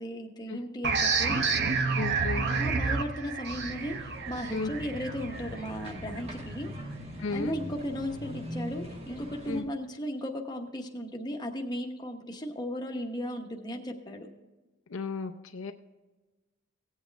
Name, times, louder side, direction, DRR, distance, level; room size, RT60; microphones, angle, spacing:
voice 1, 0.0-1.4 2.4-6.7 7.3-14.3, equal, 20° left, 2 dB, 1.1 m, -36 dB
sound 1, 0.8-6.2, right 4 dB, 55° right, 0.8 m, -29 dB
voice 2, 1.9-2.5 4.5-4.7 7.2-7.6 9.5-9.7 14.9-15.7, left 4 dB, 70° left, 6 dB, 0.6 m, -34 dB
sound 2, 3.5-9.6, equal, 30° right, 1.3 m, -41 dB
17.0 x 8.2 x 3.4 m, 1.2 s
head